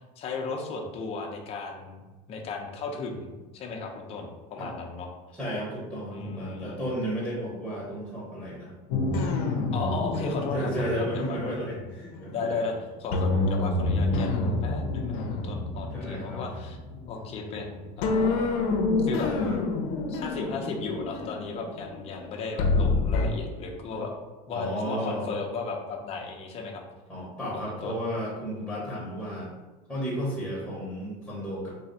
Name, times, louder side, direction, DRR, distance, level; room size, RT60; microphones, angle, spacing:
voice 1, 0.2-2.0 2.3-5.1 6.1-6.8 9.7-11.6 12.3-16.8 17.1-18.5 19.0-19.3 20.1-24.1 24.5-26.8 27.5-28.0, left 4 dB, 35° left, 1 dB, 0.6 m, -35 dB
voice 2, 5.3-8.8 9.7-9.9 10.5-12.6 15.9-16.4 19.4-19.6 23.9-24.0 24.5-25.3 27.1-29.5 29.9-31.7, equal, ahead, -7 dB, 1.0 m, -33 dB
sound 1, 8.9-12.7 13.1-17.6 18.0-23.3, left 3 dB, 80° left, 0.6 m, -28 dB
3.3 x 2.3 x 4.0 m, 1.2 s
supercardioid pair, 140°, 18 cm